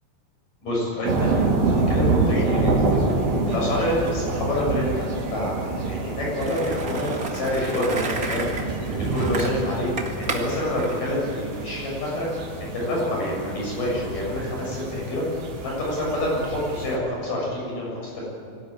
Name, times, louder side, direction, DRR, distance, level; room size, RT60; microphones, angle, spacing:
voice 1, 0.6-2.9 3.5-8.5 9.1-9.9 10.2-12.3 12.6-15.3 15.6-18.2, left 1 dB, 50° left, -3 dB, 8.7 m, -27 dB
sound 1, 1.0-17.0, right 3 dB, 80° right, 5.2 m, -27 dB
Skateboard, 6.4-11.9, right 3 dB, 35° right, 1.4 m, -32 dB
23.5 x 18.5 x 9.0 m, 2.6 s
omnidirectional pair, 4.9 m